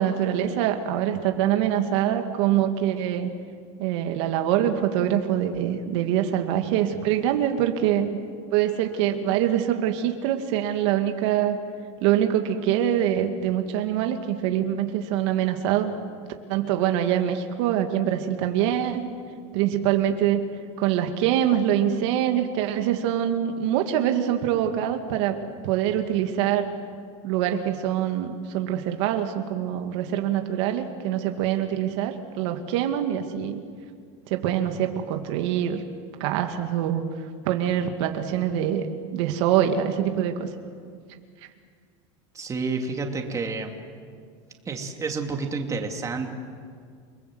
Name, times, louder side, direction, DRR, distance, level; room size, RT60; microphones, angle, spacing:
voice 1, 0.0-3.3 3.8-8.1 8.5-11.6 12.0-15.9 16.5-19.1 19.5-20.4 20.8-25.4 25.6-26.7 27.2-33.6 34.3-35.8 36.2-37.0 37.5-38.9 39.1-40.5, right 10 dB, 70° right, 5 dB, 2.0 m, -24 dB
voice 2, 42.3-43.7 44.7-46.3, right 4 dB, 20° right, 3 dB, 2.6 m, -29 dB
29.5 x 20.0 x 7.8 m, 2.1 s
supercardioid pair, 130°, 16 cm